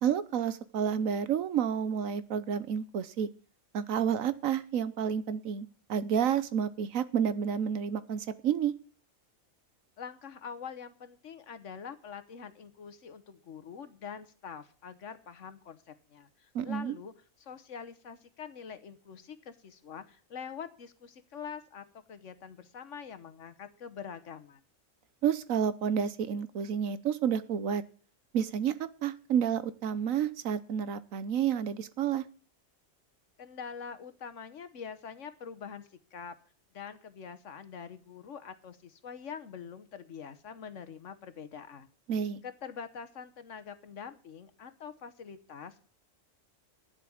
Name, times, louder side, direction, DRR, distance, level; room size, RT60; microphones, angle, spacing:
voice 1, 0.0-3.3 3.7-8.7 16.5-16.9 25.2-27.8 28.3-32.2 42.1-42.4, right 8 dB, 80° right, 15 dB, 1.3 m, -30 dB
voice 2, 10.0-17.1 17.4-24.6 33.4-36.4 36.7-41.9 42.4-45.9, left 6 dB, 65° left, 12 dB, 1.4 m, -45 dB
10.5 x 7.6 x 8.6 m, 0.40 s
omnidirectional pair, 1.4 m